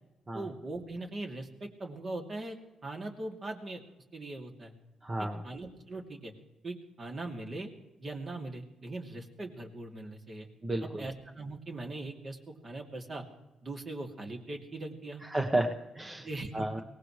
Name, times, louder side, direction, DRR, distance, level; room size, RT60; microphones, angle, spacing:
voice 1, 0.3-2.6 2.8-3.8 4.1-4.7 5.2-6.3 6.6-7.7 8.0-10.5 10.8-12.4 12.6-13.2 13.6-15.2 16.2-16.7, right 2 dB, 40° right, 2 dB, 2.7 m, -40 dB
voice 2, 5.0-5.4 10.6-11.0 15.3-16.3 16.5-16.8, right 1 dB, 20° right, 1 dB, 1.3 m, -31 dB
23.0 x 18.5 x 3.3 m, 1.0 s
cardioid pair, 90°, 0 cm